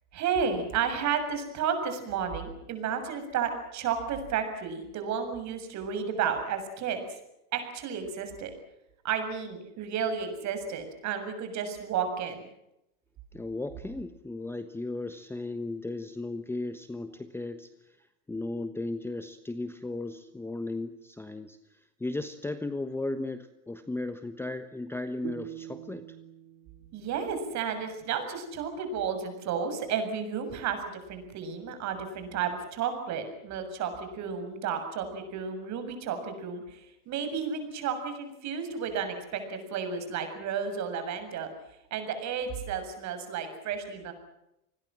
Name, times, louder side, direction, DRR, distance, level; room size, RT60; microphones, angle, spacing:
voice 1, 0.1-7.0 7.5-8.5 9.0-12.5 26.9-41.5 41.9-44.1, right 7 dB, 40° right, 8 dB, 7.2 m, -32 dB
voice 2, 13.3-26.1, left 2 dB, 5° left, 10 dB, 1.1 m, -36 dB
sound 1, 25.2-28.4, right 15 dB, 70° right, 2.8 m, -46 dB
28.0 x 20.5 x 7.5 m, 0.84 s
supercardioid pair, 120°, 41 cm